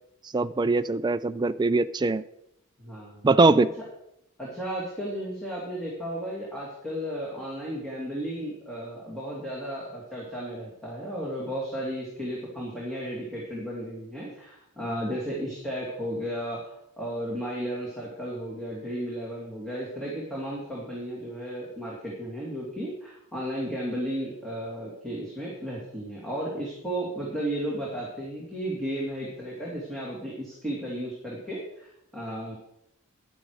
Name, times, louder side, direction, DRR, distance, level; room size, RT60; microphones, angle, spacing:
voice 1, 0.3-2.2 3.2-3.7, right 3 dB, 20° right, 13 dB, 0.3 m, -22 dB
voice 2, 2.8-3.3 4.4-32.5, equal, ahead, -6 dB, 2.6 m, -34 dB
11.0 x 10.0 x 4.9 m, 0.80 s
head